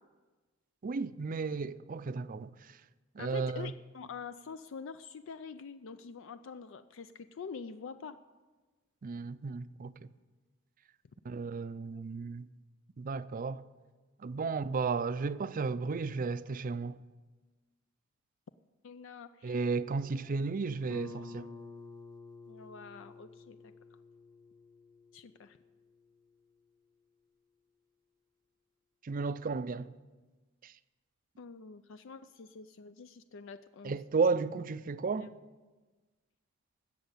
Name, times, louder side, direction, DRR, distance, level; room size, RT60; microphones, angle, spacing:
voice 1, 0.8-2.5 3.2-3.7 9.0-9.9 11.2-12.5 13.0-13.6 14.2-17.0 19.4-21.5 29.0-29.9 30.6-30.7 33.8-35.3, right 4 dB, 40° right, 0.4 m, -33 dB
voice 2, 3.2-8.2 18.8-19.6 22.5-23.7 25.1-25.6 31.4-34.0 35.2-35.3, left 5 dB, 65° left, 0.4 m, -46 dB
Guitar, 20.9-26.3, left 3 dB, 20° left, 0.8 m, -50 dB
16.0 x 6.6 x 8.3 m
head